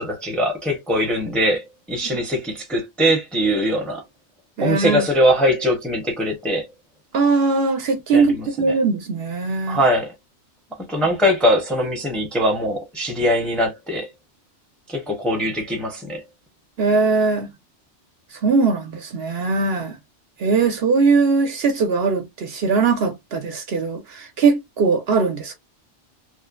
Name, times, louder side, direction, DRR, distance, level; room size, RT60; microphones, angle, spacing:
voice 1, 0.0-4.0 4.6-6.7 8.1-8.8 9.7-10.1 10.8-14.1 14.9-16.2, equal, ahead, 0.6 m, -21 dB
voice 2, 4.6-5.0 7.1-9.8 16.8-17.5 18.4-20.0 20.4-25.5, right 4 dB, 65° right, 0.8 m, -20 dB
3.0 x 2.1 x 2.4 m
omnidirectional pair, 1.2 m